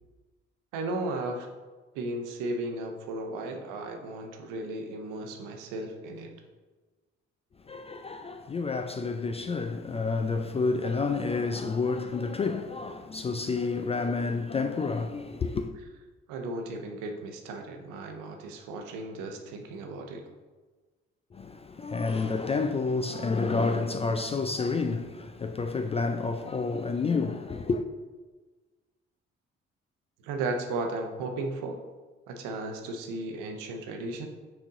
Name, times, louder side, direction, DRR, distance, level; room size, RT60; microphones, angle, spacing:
voice 1, 0.7-1.5 1.9-6.3 16.3-20.2 30.2-31.8 32.3-34.3, right 2 dB, 65° right, 0.9 m, -35 dB
voice 2, 7.6-15.7 21.3-27.8, left 4 dB, 20° left, 0.3 m, -29 dB
5.9 x 4.3 x 3.7 m
figure-of-eight pair, 40°, 34 cm